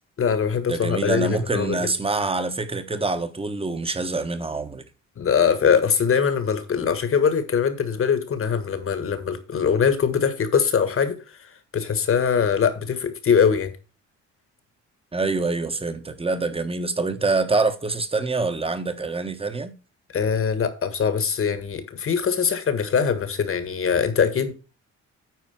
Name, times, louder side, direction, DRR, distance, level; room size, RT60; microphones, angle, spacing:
voice 1, 0.2-1.8 5.2-11.2 11.4-13.7 20.1-24.5, left 6 dB, 45° left, 1.8 m, -22 dB
voice 2, 0.7-4.8 15.1-19.7, right 3 dB, 20° right, 1.3 m, -25 dB
9.4 x 4.5 x 6.0 m
cardioid pair, 90°, 30 cm